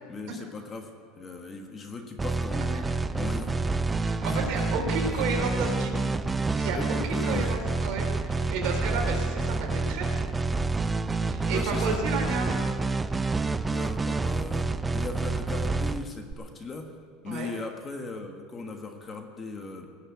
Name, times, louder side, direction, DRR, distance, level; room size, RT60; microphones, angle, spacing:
voice 1, 0.1-0.9 1.2-2.8 3.1-3.7 4.3-4.4 5.1-5.2 6.7-7.5 11.5-12.0 13.7-16.9 17.2-19.9, left 3 dB, 25° left, 4 dB, 1.4 m, -38 dB
sound 1, 2.2-16.3, right 3 dB, 10° right, 0.4 m, -28 dB
voice 2, 4.0-6.1 6.5-10.1 11.3-12.6 17.3-17.5, right 4 dB, 55° right, 1 dB, 3.7 m, -32 dB
19.0 x 6.7 x 9.1 m, 2.2 s
supercardioid pair, 135°, 0 cm